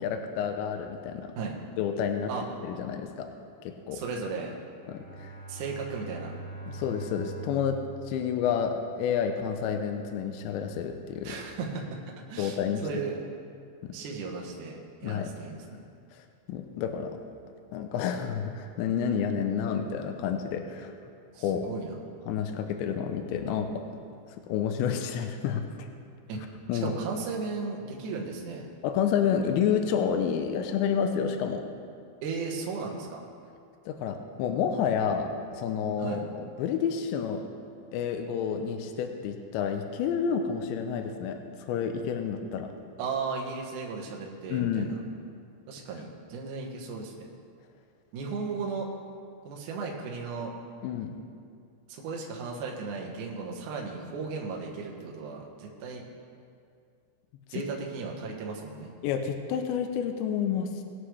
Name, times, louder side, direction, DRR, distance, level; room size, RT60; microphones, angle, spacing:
voice 1, 0.0-1.3 1.8-2.3 2.6-3.3 3.6-4.0 4.9-5.3 6.7-7.8 8.1-11.4 12.4-12.8 13.8-14.0 15.0-15.3 16.5-17.2 17.7-20.9 21.4-21.7 22.3-23.8 24.5-25.6 26.7-26.9 28.8-31.6 33.9-37.4 37.9-41.4 41.7-42.7 44.5-44.9 50.8-51.1 57.6-57.7 59.0-60.7, left 7 dB, 80° left, 5 dB, 2.7 m, -29 dB
voice 2, 3.9-4.5 5.5-6.3 11.2-11.8 12.3-13.2 13.9-15.8 21.3-21.9 26.3-26.4 26.8-28.7 32.2-33.2 36.0-36.2 43.0-45.0 45.7-47.3 48.1-48.9 49.4-50.5 51.9-56.0 57.5-58.9, right 4 dB, 75° right, -1 dB, 1.8 m, -35 dB
Bowed string instrument, 4.8-9.1, right 2 dB, 65° left, 3.8 m, -43 dB
20.5 x 8.0 x 3.3 m, 2.3 s
omnidirectional pair, 5.7 m